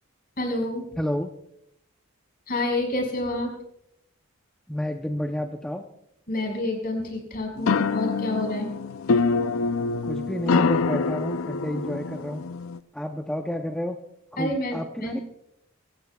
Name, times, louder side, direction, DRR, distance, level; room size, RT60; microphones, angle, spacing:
voice 1, 0.4-1.0 2.5-3.5 6.3-8.7 14.4-15.2, left 1 dB, 45° left, 2 dB, 5.3 m, -28 dB
voice 2, 1.0-1.3 4.7-5.8 10.1-12.4 12.9-14.0 14.3-15.2, equal, 5° left, 3 dB, 0.6 m, -30 dB
sound 1, 7.6-12.8, left 4 dB, 70° left, 0.5 m, -25 dB
26.0 x 15.0 x 2.3 m, 0.77 s
head